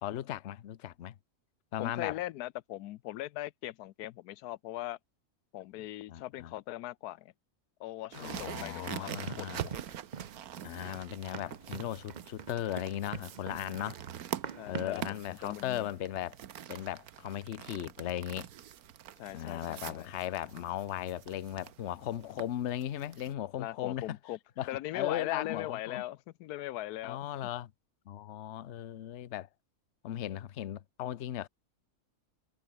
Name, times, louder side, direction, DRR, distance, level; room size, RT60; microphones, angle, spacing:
voice 1, 0.0-1.1 1.7-2.2 6.1-6.5 8.1-9.7 10.6-14.0 14.7-16.4 16.7-18.5 19.3-24.2 24.6-26.0 27.0-27.7 28.1-29.5 30.0-31.5, left 12 dB, 55° left, 1.0 m, -37 dB
voice 2, 1.8-5.0 5.5-7.3 7.8-9.8 14.6-15.0 15.3-15.9 19.2-20.1 23.6-24.4 24.7-27.2, left 15 dB, 85° left, 1.1 m, -40 dB
sound 1, 8.1-23.3, right 10 dB, 75° right, 1.4 m, -45 dB
Run, 9.3-15.1, right 6 dB, 40° right, 0.7 m, -45 dB
sound 2, 13.6-16.3 22.3-26.3, left 1 dB, 35° left, 6.1 m, -72 dB
omnidirectional pair, 1.6 m